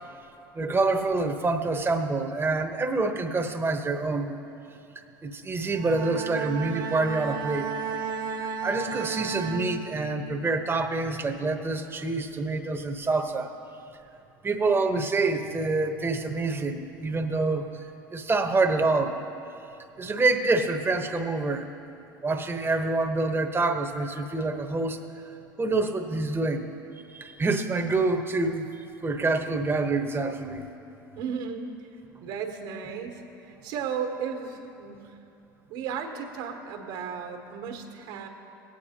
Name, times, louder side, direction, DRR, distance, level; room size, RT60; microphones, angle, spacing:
voice 1, 0.5-4.4 5.2-7.7 8.4-13.5 14.4-17.7 18.1-19.2 20.0-21.7 22.2-25.1 25.6-26.7 27.1-28.7 29.0-30.7, right 3 dB, 20° right, 5 dB, 1.1 m, -26 dB
Bowed string instrument, 5.6-10.3, right 6 dB, 45° right, 1.1 m, -34 dB
voice 2, 31.1-31.9 32.2-35.2 35.7-38.3, right 6 dB, 65° right, 3 dB, 1.6 m, -35 dB
19.5 x 9.0 x 2.9 m, 2.7 s
hypercardioid pair, 75°, 11 cm